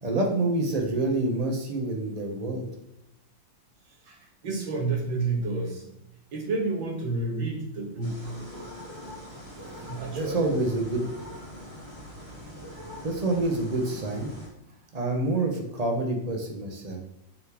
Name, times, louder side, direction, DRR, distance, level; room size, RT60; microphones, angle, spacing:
voice 1, 0.0-2.7 10.1-11.0 13.0-14.3 14.9-17.0, right 2 dB, 30° right, 2 dB, 0.7 m, -27 dB
voice 2, 4.4-5.8 6.3-8.4 9.8-10.5, right 3 dB, 90° right, 0 dB, 2.1 m, -30 dB
sound 1, 8.0-14.5, equal, 15° right, 1.3 m, -42 dB
6.7 x 4.7 x 3.5 m, 0.84 s
omnidirectional pair, 2.0 m